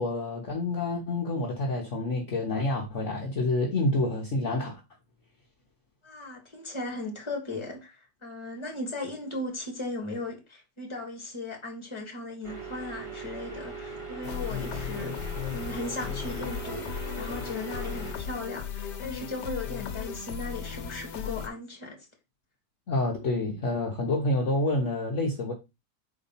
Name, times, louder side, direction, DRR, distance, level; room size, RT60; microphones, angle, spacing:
voice 1, 0.0-4.8 22.9-25.5, left 2 dB, 50° left, 1.3 m, -28 dB
voice 2, 6.0-22.1, left 2 dB, 15° left, 1.8 m, -37 dB
sound 1, 12.4-18.1, right 4 dB, 20° right, 1.6 m, -39 dB
sound 2, 14.2-21.5, left 8 dB, 80° left, 1.5 m, -36 dB
4.9 x 4.3 x 5.5 m
omnidirectional pair, 1.8 m